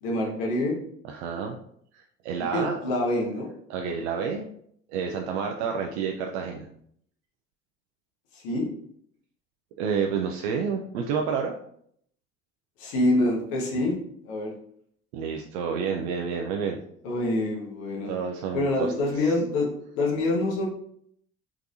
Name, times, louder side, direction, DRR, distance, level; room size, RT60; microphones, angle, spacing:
voice 1, 0.0-0.7 2.5-3.5 8.3-8.7 12.8-13.9 14.2-14.5 17.0-18.1 18.5-19.7 19.9-20.7, left 1 dB, 75° left, -1 dB, 1.2 m, -26 dB
voice 2, 1.1-1.6 1.9-2.8 3.7-4.4 4.9-6.7 9.8-11.6 15.1-16.8 18.1-18.9, right 6 dB, 75° right, 3 dB, 0.5 m, -29 dB
3.5 x 3.2 x 2.6 m, 0.67 s
hypercardioid pair, 60°, 34 cm